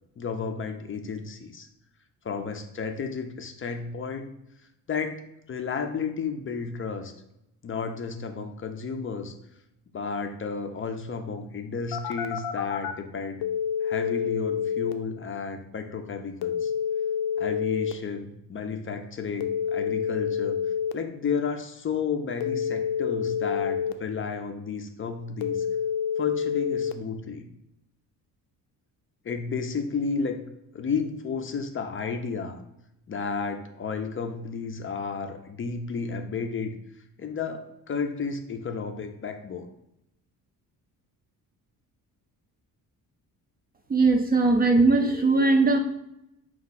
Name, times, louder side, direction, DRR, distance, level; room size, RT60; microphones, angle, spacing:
voice 1, 0.2-1.7 2.2-4.3 4.9-5.2 5.5-7.1 7.6-9.3 9.9-13.5 13.8-16.7 17.4-20.6 20.9-25.7 26.2-27.4 29.3-30.4 30.7-32.6 33.1-36.7 37.2-39.7, left 5 dB, 35° left, 5 dB, 0.5 m, -32 dB
Telephone, 11.9-12.9 13.4-14.9 16.4-17.9 19.4-20.9 22.4-23.9 25.4-26.9, left 8 dB, 80° left, 0.5 m, -28 dB
voice 2, 43.9-45.8, right 3 dB, 25° right, 5 dB, 0.4 m, -20 dB
4.3 x 2.4 x 4.1 m, 0.83 s
cardioid pair, 105°, 38 cm